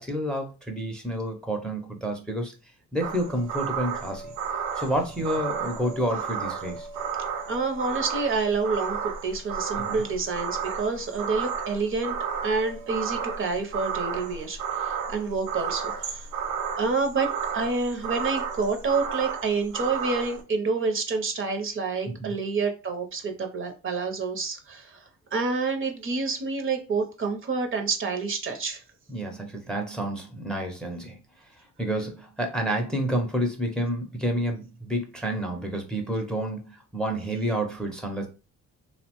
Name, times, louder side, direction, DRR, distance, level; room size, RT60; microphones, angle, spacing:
voice 1, 0.0-2.5 2.9-4.2 4.8-6.9 9.8-10.0 22.1-22.4 29.1-31.2 31.8-38.3, right 1 dB, 5° left, 3 dB, 0.5 m, -29 dB
sound 1, 3.0-20.4, right 7 dB, 90° right, 0.5 m, -32 dB
voice 2, 7.5-12.2 12.4-16.3 16.8-25.0 25.3-28.8, right 4 dB, 45° right, 5 dB, 0.6 m, -28 dB
2.8 x 2.1 x 2.9 m, 0.32 s
cardioid pair, 90°, 30 cm